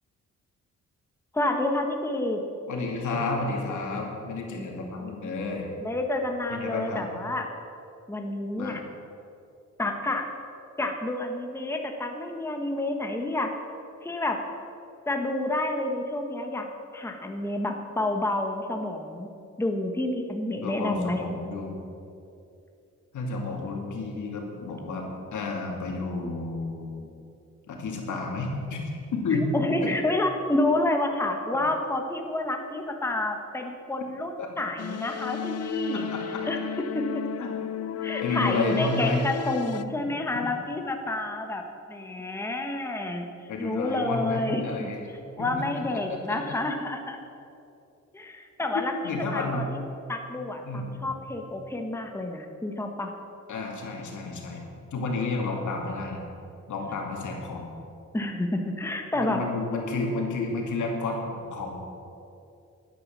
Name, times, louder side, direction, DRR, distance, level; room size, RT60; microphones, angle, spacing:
voice 1, 1.3-2.4 4.5-5.3 5.8-7.4 8.1-8.8 9.8-10.3 10.8-13.5 14.0-14.4 15.1-16.7 16.9-19.3 19.6-21.2 29.3-36.0 36.4-36.6 36.9-37.0 38.0-41.6 41.9-43.3 43.6-44.9 45.4-47.2 48.1-49.8 50.1-53.1 58.1-59.4, left 2 dB, 10° left, 3 dB, 1.1 m, -29 dB
voice 2, 2.7-5.7 6.5-7.1 8.6-8.8 20.6-21.8 23.1-27.1 27.7-28.8 29.1-29.9 34.4-34.5 36.1-36.2 37.4-37.5 38.2-39.3 43.5-45.0 45.4-46.6 48.7-49.7 50.6-51.0 53.5-54.7 54.9-56.2 56.7-57.7 59.1-61.7, left 3 dB, 85° left, 0 dB, 2.5 m, -31 dB
sound 1, 34.8-39.8, left 9 dB, 55° left, 0.5 m, -34 dB
12.5 x 9.3 x 7.3 m, 2.7 s
wide cardioid pair, 125°, 29 cm